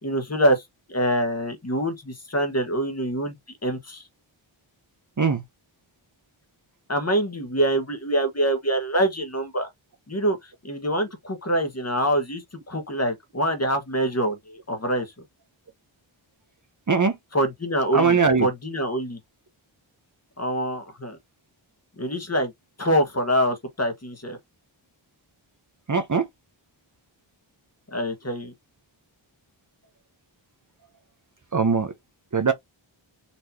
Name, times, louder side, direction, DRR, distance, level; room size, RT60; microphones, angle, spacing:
voice 1, 0.0-0.6 0.9-3.3 3.6-4.1 6.9-9.7 10.1-15.1 17.3-19.2 20.4-21.2 22.0-22.5 22.8-24.4 27.9-28.5, right 1 dB, 30° left, 1.4 m, -25 dB
voice 2, 17.9-18.5 25.9-26.3 31.5-31.9 32.3-32.5, right 5 dB, 40° right, 0.9 m, -20 dB
4.3 x 3.1 x 2.8 m
wide cardioid pair, 55°, 48 cm